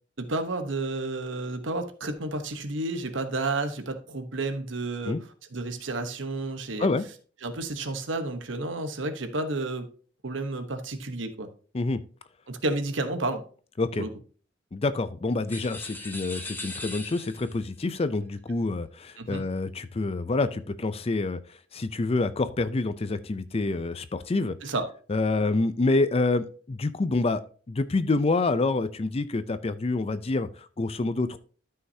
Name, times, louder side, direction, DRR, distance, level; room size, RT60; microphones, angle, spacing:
voice 1, 0.2-6.9 7.4-9.9 10.2-11.5 12.5-13.4 14.0-14.1 19.2-19.4 24.6-24.9, right 2 dB, 75° right, 8 dB, 1.0 m, -31 dB
voice 2, 14.7-24.7 25.1-27.4 27.7-31.4, left 3 dB, 30° left, 12 dB, 0.5 m, -27 dB
sound 1, 15.5-17.6, left 2 dB, 10° left, 1.1 m, -39 dB
13.0 x 5.7 x 2.8 m, 0.41 s
head